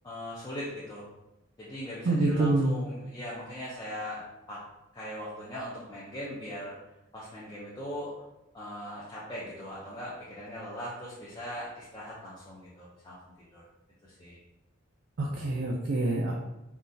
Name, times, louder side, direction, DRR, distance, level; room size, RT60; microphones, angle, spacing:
voice 1, 0.0-1.1 1.6-4.6 4.9-6.8 7.1-8.1 8.5-13.2 13.5-13.6 14.0-14.4, equal, 20° left, -7 dB, 0.5 m, -40 dB
voice 2, 2.0-2.8 15.2-16.3, right 2 dB, 55° right, -2 dB, 0.4 m, -26 dB
3.8 x 2.3 x 2.6 m, 0.92 s
head